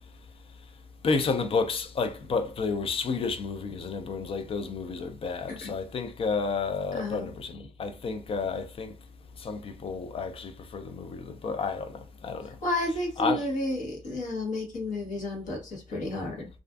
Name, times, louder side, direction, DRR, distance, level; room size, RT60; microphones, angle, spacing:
voice 1, 1.0-8.9 9.4-12.6 13.2-13.5, left 4 dB, 40° left, 0.4 m, -31 dB
voice 2, 6.9-7.3 12.6-16.5, left 1 dB, 55° left, 1.0 m, -31 dB
2.4 x 2.4 x 2.3 m
cardioid pair, 125°, 15 cm